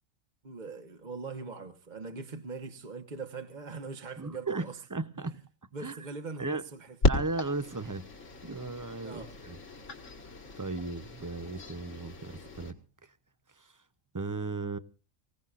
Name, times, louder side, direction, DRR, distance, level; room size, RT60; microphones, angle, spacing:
voice 1, 0.4-4.8 5.7-7.0 9.0-9.3, right 4 dB, 35° right, 1.2 m, -41 dB
voice 2, 4.2-5.4 5.8-5.9 6.4-6.6 7.1-8.1 8.4-9.6 10.6-12.8 13.6-13.7 14.1-14.8, right 3 dB, 20° right, 0.5 m, -36 dB
sound 1, 7.0-12.7, left 2 dB, 65° left, 2.2 m, -34 dB
25.5 x 16.5 x 2.5 m
omnidirectional pair, 1.4 m